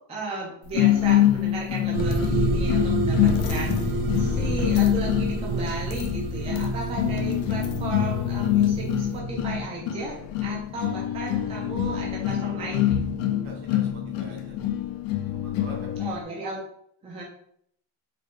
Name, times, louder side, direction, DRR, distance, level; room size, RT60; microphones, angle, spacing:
voice 1, 0.0-13.0 16.0-16.7 17.0-17.2, right 3 dB, 15° right, -3 dB, 0.4 m, -35 dB
sound 1, 0.7-16.2, left 12 dB, 75° left, 0.6 m, -25 dB
sound 2, 1.9-9.6, right 1 dB, 85° right, 0.9 m, -28 dB
voice 2, 13.4-14.5 15.3-16.0, right 2 dB, 65° right, -2 dB, 1.3 m, -45 dB
3.7 x 2.2 x 3.6 m, 0.67 s
cardioid pair, 170°, 46 cm